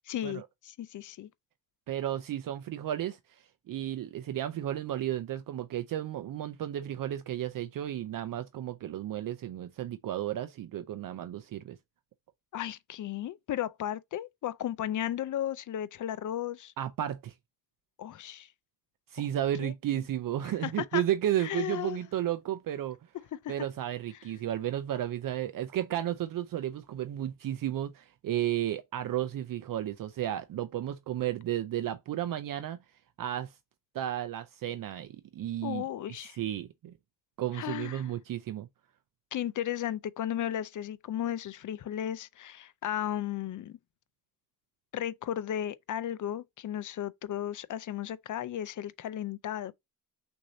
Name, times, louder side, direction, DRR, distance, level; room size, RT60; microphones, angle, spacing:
voice 1, 0.1-1.3 12.5-16.7 18.0-18.5 19.6-20.0 20.4-21.0 21.4-22.0 23.3-23.7 35.6-36.4 37.5-38.1 39.3-43.8 44.9-49.7, left 11 dB, 60° left, 0.5 m, -35 dB
voice 2, 1.9-3.2 3.7-11.8 16.8-17.3 19.1-23.0 23.5-32.8 33.2-33.5 33.9-35.8 36.2-36.9 37.4-38.7, right 12 dB, 70° right, 0.5 m, -33 dB
6.2 x 2.7 x 2.7 m
wide cardioid pair, 160°, 35 cm